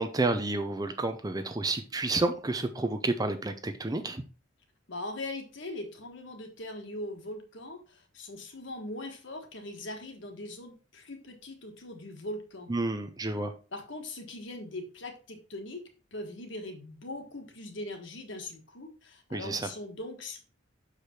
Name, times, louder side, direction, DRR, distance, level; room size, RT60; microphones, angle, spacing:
voice 1, 0.0-4.2 12.7-13.5 19.3-19.7, right 2 dB, 20° right, 0.5 m, -30 dB
voice 2, 4.9-12.7 13.7-15.8 16.1-20.4, left 1 dB, 65° left, 1.5 m, -41 dB
6.5 x 5.0 x 4.3 m
head